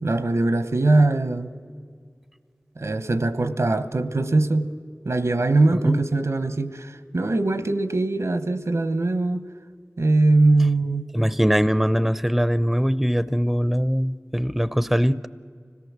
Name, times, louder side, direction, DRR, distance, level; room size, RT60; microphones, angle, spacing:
voice 1, 0.0-1.5 2.8-4.7 5.0-9.4 10.0-11.1, right 2 dB, 80° right, 11 dB, 0.9 m, -21 dB
voice 2, 11.1-15.3, equal, 5° right, 16 dB, 0.5 m, -22 dB
25.0 x 17.0 x 7.4 m, 2.1 s
wide cardioid pair, 40°, 5 cm